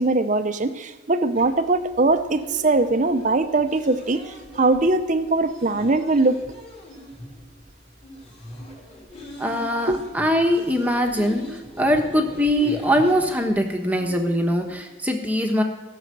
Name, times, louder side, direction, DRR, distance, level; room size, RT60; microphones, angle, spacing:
voice 1, 0.0-6.4 9.9-10.0, right 2 dB, 40° right, 0.7 m, -21 dB
sound 1, 1.3-14.8, equal, 30° left, 3.5 m, -41 dB
voice 2, 9.4-15.6, equal, 10° right, 1.2 m, -22 dB
16.0 x 6.5 x 7.7 m
head